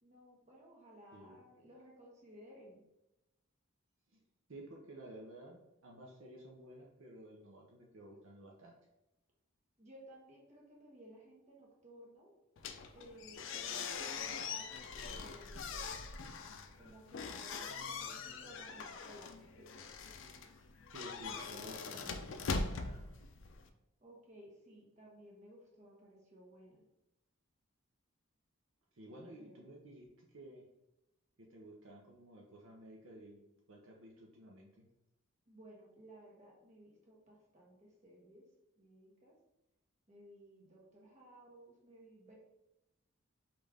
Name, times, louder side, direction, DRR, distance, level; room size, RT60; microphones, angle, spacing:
voice 1, 0.0-2.8 9.8-12.3 12.9-15.9 16.8-19.7 24.0-26.8 29.1-29.7 35.5-38.4 38.8-39.3 40.1-42.3, right 1 dB, 35° right, -3 dB, 1.1 m, -57 dB
voice 2, 4.5-8.8 20.9-23.1 28.9-30.7 31.4-33.4 33.7-34.8, right 1 dB, 70° right, -2 dB, 0.7 m, -53 dB
sound 1, 12.6-23.7, left 4 dB, 60° left, 0.4 m, -42 dB
5.3 x 2.5 x 3.4 m, 0.94 s
head